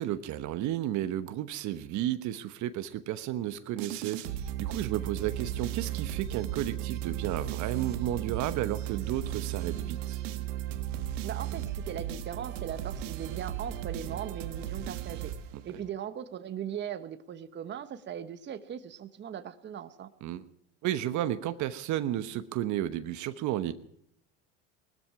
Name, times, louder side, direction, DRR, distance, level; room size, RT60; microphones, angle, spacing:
voice 1, 0.0-10.2 20.2-20.4 20.8-23.7, right 12 dB, 50° right, 11 dB, 1.0 m, -32 dB
sound 1, 3.8-15.9, right 11 dB, 90° right, 1.5 m, -35 dB
voice 2, 11.2-15.3 15.6-20.1, right 9 dB, 30° right, 10 dB, 1.1 m, -39 dB
20.0 x 13.5 x 4.8 m, 0.71 s
supercardioid pair, 110°, 36 cm